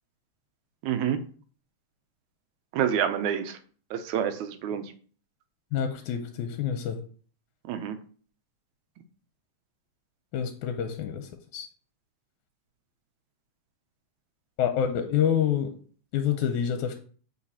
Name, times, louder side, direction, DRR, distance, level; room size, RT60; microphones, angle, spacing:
voice 1, 0.8-1.2 2.7-3.6 3.9-4.8 7.7-8.0, right 9 dB, 80° right, 9 dB, 1.9 m, -27 dB
voice 2, 5.7-7.0 10.3-11.7 14.6-15.7 16.1-17.0, left 8 dB, 80° left, 6 dB, 2.0 m, -27 dB
8.3 x 4.8 x 2.8 m, 0.43 s
omnidirectional pair, 3.6 m